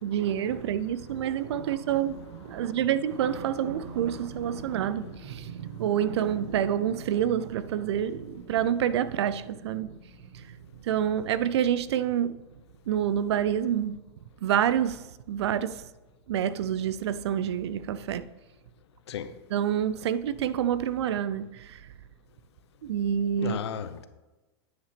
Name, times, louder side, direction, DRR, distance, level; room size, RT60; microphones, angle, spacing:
voice 1, 0.0-10.0 10.3-10.6 10.8-12.4 12.9-14.0 14.4-15.9 16.3-18.3 19.5-21.9 22.8-23.6, right 9 dB, 80° right, 0.5 m, -28 dB
voice 2, 3.9-5.2 5.6-5.9 8.3-8.4 19.1-19.3 23.4-24.1, left 8 dB, 80° left, 0.8 m, -38 dB
9.6 x 5.9 x 5.0 m
supercardioid pair, 135°, 14 cm